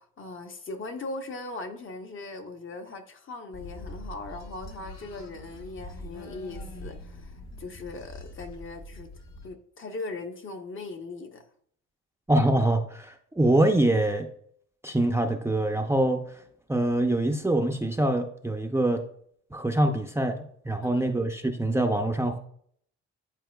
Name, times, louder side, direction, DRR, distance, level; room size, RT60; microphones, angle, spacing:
voice 1, 0.0-9.1 9.4-11.4 20.8-21.1, left 3 dB, 40° left, 5 dB, 0.9 m, -39 dB
sound 1, 3.5-9.5, left 1 dB, 60° left, 1.3 m, -43 dB
voice 2, 12.3-14.3 14.8-16.4 16.7-19.0 19.5-22.4, right 1 dB, 10° right, 4 dB, 0.5 m, -24 dB
10.0 x 4.3 x 2.3 m, 0.63 s
cardioid pair, 90°, 30 cm